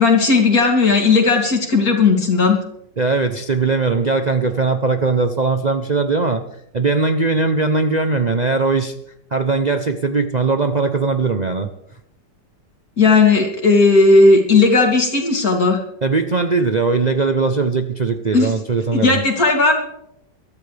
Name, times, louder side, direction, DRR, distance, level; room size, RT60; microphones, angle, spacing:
voice 1, 0.0-2.6 13.0-15.8 18.3-18.5 18.9-19.7, left 3 dB, 50° left, 1 dB, 3.3 m, -14 dB
voice 2, 3.0-6.4 6.7-8.9 9.3-11.7 16.0-19.2, right 4 dB, 90° right, 5 dB, 0.3 m, -19 dB
22.5 x 13.0 x 3.4 m, 0.76 s
omnidirectional pair, 2.0 m